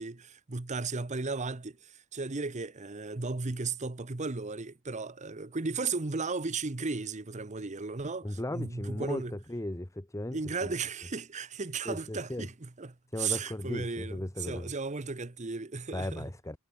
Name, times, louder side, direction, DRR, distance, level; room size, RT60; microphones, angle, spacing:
voice 1, 0.0-9.4 10.3-16.3, right 4 dB, 35° right, 0.9 m, -35 dB
voice 2, 8.2-10.4 10.6-10.7 11.8-12.4 13.1-14.7 15.9-16.6, left 1 dB, 15° left, 1.0 m, -36 dB
head